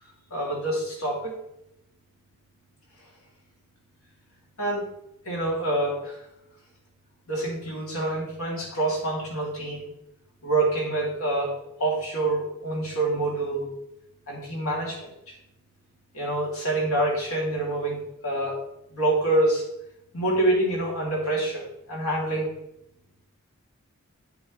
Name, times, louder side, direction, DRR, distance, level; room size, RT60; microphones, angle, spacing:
voice 1, 0.3-1.4 4.6-4.8 5.2-6.1 7.3-9.9 10.4-11.5 11.8-13.7 14.3-15.3 16.1-18.6 18.9-19.6 20.1-22.5, right 2 dB, 75° left, -3 dB, 3.3 m, -26 dB
9.3 x 7.0 x 3.4 m, 0.80 s
head